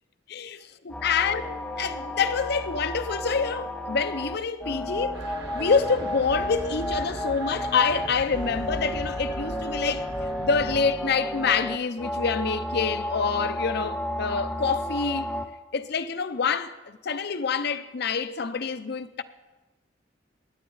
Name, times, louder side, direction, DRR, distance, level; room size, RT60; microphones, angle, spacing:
voice 1, 0.3-5.2 5.5-10.1 10.4-15.3 15.7-19.2, left 5 dB, 60° left, 0.6 m, -27 dB
sound 1, 0.9-15.4, left 1 dB, 5° left, 0.6 m, -32 dB
sound 2, 5.1-10.8, right 1 dB, 65° right, 1.7 m, -39 dB
17.5 x 10.0 x 4.0 m
head